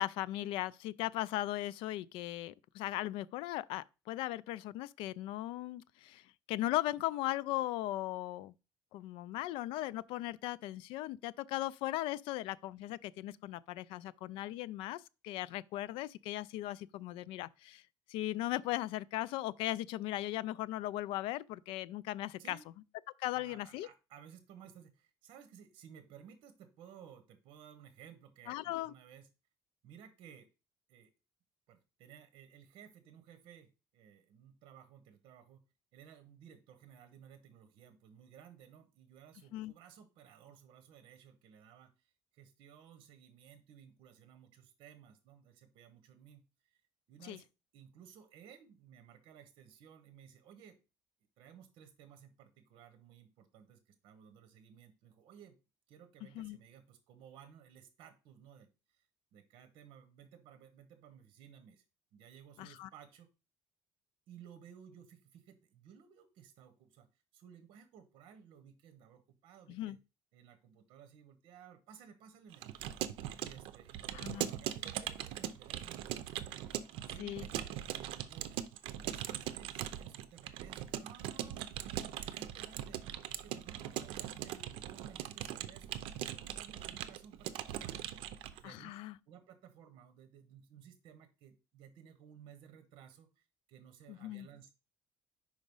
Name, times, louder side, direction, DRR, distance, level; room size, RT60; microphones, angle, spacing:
voice 1, 0.0-6.2 6.5-8.5 8.9-17.8 18.1-22.6 23.2-23.9 28.5-28.9 39.5-39.7 47.2-47.4 56.4-56.6 62.6-62.9 69.7-70.0 74.1-74.5 77.2-77.4 88.6-89.2 94.1-94.5, left 15 dB, 85° left, 0.3 m, -38 dB
voice 2, 23.3-29.3 29.8-30.5 30.9-31.1 31.7-35.6 35.9-46.8 47.1-47.5 47.7-50.8 51.4-55.6 55.9-59.0 59.3-61.8 62.1-63.3 64.3-67.1 67.3-70.0 70.3-72.7 73.4-76.1 76.6-77.3 77.9-78.5 79.0-81.6 82.2-83.0 83.3-89.0 89.3-94.7, right 8 dB, 65° right, 1.0 m, -57 dB
Keyboard (musical) / Computer keyboard, 72.5-88.6, right 12 dB, 85° right, 0.6 m, -41 dB
5.1 x 4.8 x 5.4 m
cardioid pair, 160°, 9 cm